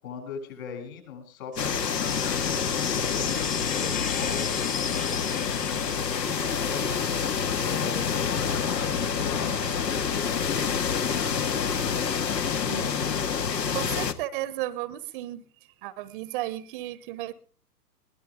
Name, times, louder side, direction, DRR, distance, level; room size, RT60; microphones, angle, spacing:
voice 1, 0.0-7.0 7.6-12.7, left 6 dB, 55° left, 5 dB, 8.0 m, -40 dB
sound 1, 1.5-6.8, left 7 dB, 15° left, 1.3 m, -35 dB
sound 2, 1.6-14.1, left 6 dB, 80° left, 1.9 m, -27 dB
voice 2, 13.7-15.4 15.8-17.3, right 15 dB, 30° right, 17 dB, 0.9 m, -34 dB
22.0 x 17.0 x 3.6 m, 0.41 s
hypercardioid pair, 125°, 49 cm